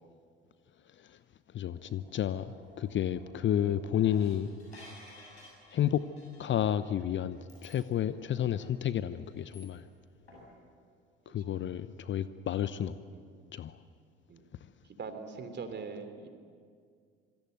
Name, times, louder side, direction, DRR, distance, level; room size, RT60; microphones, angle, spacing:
voice 1, 1.5-4.5 5.7-6.0 6.4-9.8 11.3-13.0 13.5-13.8, left 10 dB, 35° left, 0.9 m, -31 dB
sound 1, 1.7-10.0 10.3-10.5, left 1 dB, 85° left, 7.4 m, -56 dB
voice 2, 15.0-16.3, right 5 dB, 35° right, 3.3 m, -42 dB
26.5 x 24.5 x 8.0 m
figure-of-eight pair, 55°, 32 cm